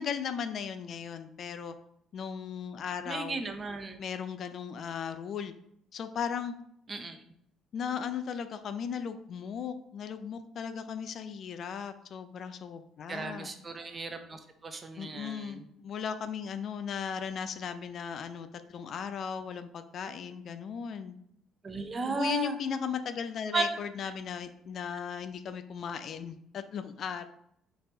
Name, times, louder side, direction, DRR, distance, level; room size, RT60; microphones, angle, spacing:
voice 1, 0.0-1.7 2.1-3.4 4.0-5.5 5.9-6.5 7.7-13.5 15.0-21.1 22.1-27.3, left 7 dB, 55° left, 10 dB, 0.3 m, -36 dB
voice 2, 3.1-4.0 6.9-7.2 13.1-15.6 21.6-22.6 23.5-24.1, right 3 dB, 35° right, 7 dB, 0.6 m, -35 dB
4.1 x 3.3 x 2.7 m, 0.72 s
hypercardioid pair, 55°, 0 cm